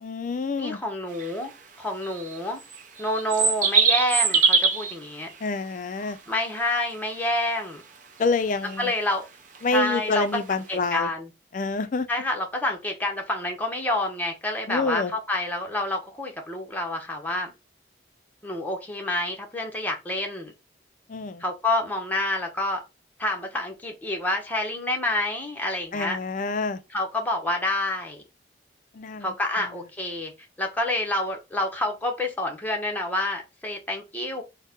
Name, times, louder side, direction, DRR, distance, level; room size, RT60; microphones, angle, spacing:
voice 1, 0.0-0.8 5.4-6.2 8.2-8.9 9.6-11.1 11.5-12.1 14.7-15.1 21.1-21.4 25.9-26.8 28.9-29.3, left 3 dB, 45° left, 0.4 m, -27 dB
voice 2, 0.6-1.5 1.8-2.6 3.0-5.3 6.3-7.8 8.8-9.2 9.7-11.3 12.1-17.5 18.4-20.5 21.4-22.8 23.2-26.2 26.9-28.2 29.2-30.3 30.6-34.4, left 1 dB, 10° left, 0.8 m, -28 dB
sound 1, 1.2-1.3 2.1-4.9 8.7-8.9 9.5-9.6 10.7-10.8, right 5 dB, 45° right, 0.5 m, -22 dB
4.1 x 2.1 x 3.6 m
head